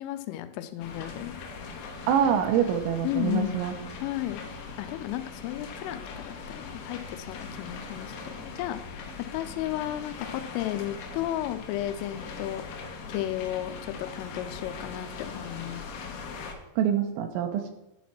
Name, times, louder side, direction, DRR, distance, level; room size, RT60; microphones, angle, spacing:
voice 1, 0.0-1.4 3.0-3.7 4.0-4.4 4.8-9.0 9.3-12.6 13.1-15.8, left 14 dB, 90° left, 10 dB, 3.2 m, -33 dB
sound 1, 0.8-16.5, left 4 dB, 70° left, 2.5 m, -41 dB
voice 2, 2.1-3.7 16.8-17.7, right 8 dB, 80° right, 6 dB, 3.1 m, -25 dB
11.0 x 4.2 x 5.9 m, 0.90 s
omnidirectional pair, 5.6 m